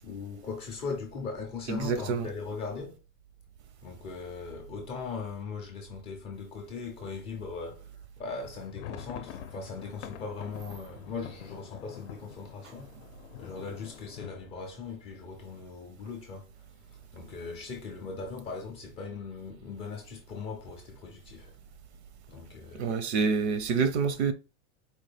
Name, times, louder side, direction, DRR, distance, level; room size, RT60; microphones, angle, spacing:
voice 1, 0.0-3.0 3.8-12.9 13.4-16.5 16.9-21.5 22.3-23.1, left 4 dB, 15° left, 0.3 m, -39 dB
voice 2, 1.7-2.3 22.7-24.3, right 5 dB, 65° right, 0.7 m, -27 dB
sound 1, 8.4-16.1 16.4-16.6 16.8-17.0 17.6-18.1, left 11 dB, 75° left, 0.6 m, -46 dB
4.3 x 2.1 x 3.2 m
supercardioid pair, 155°, 36 cm